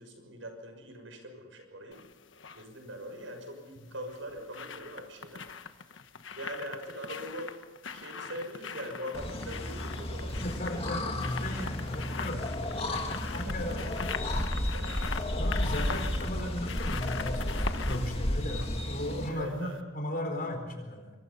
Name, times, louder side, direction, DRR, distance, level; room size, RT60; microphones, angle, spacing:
voice 1, 0.0-2.0 2.5-5.5 6.3-7.5 7.9-10.4 13.4-13.8 14.4-14.9 19.3-19.8, equal, 80° right, 4 dB, 6.4 m, -42 dB
sound 1, 1.9-2.6 3.9-19.4 19.7-19.8, left 5 dB, 75° left, 1.3 m, -42 dB
sound 2, 9.1-19.3, left 1 dB, 30° left, 2.5 m, -33 dB
voice 2, 10.4-12.5 12.7-13.9 14.3-14.6 15.3-19.7 19.9-21.1, left 1 dB, 50° left, 4 dB, 4.4 m, -36 dB
26.0 x 24.0 x 5.6 m, 1.2 s
head